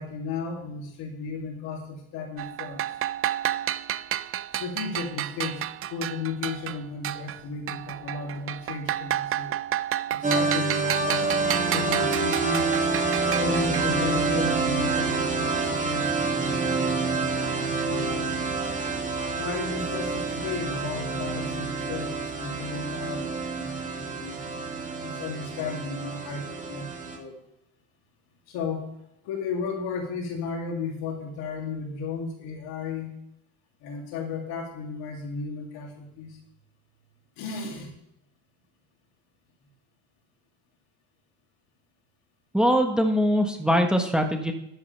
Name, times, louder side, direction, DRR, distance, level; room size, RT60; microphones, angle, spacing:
voice 1, 0.0-3.0 4.6-9.6 10.1-12.9 13.3-18.7 19.2-24.4 25.0-27.4 28.5-28.9 29.2-33.1 33.8-36.4 37.4-37.9, left 4 dB, 80° left, 1 dB, 2.9 m, -34 dB
sound 1, 2.4-7.4 7.7-13.9, right 12 dB, 40° right, 0.4 m, -31 dB
sound 2, 10.2-27.2, right 4 dB, 20° right, 2.3 m, -27 dB
voice 2, 42.5-44.5, equal, ahead, 4 dB, 1.3 m, -22 dB
12.5 x 9.6 x 3.4 m, 0.79 s
cardioid pair, 110°, 36 cm